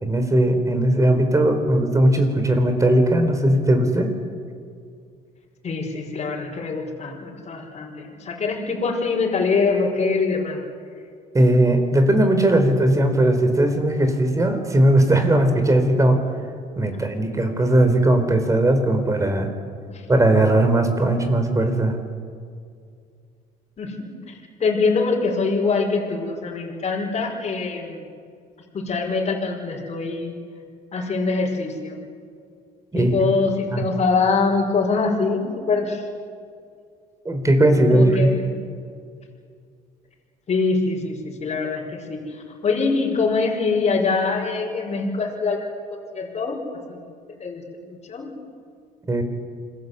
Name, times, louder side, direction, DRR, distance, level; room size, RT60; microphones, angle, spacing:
voice 1, 0.0-4.1 11.3-16.2 16.8-19.5 20.1-22.0 32.9-33.1 33.7-33.8 37.2-38.3 49.1-49.2, right 1 dB, 20° right, 6 dB, 4.2 m, -18 dB
voice 2, 5.6-7.9 8.2-10.6 23.8-24.1 24.6-28.0 28.7-30.3 30.9-32.0 32.9-36.0 37.9-38.5 40.5-42.3 42.6-45.6 46.1-46.6 46.9-47.0 47.4-47.6 47.9-48.3, left 4 dB, 40° left, -1 dB, 5.6 m, -23 dB
28.0 x 21.0 x 8.3 m, 2.3 s
cardioid pair, 110°, 17 cm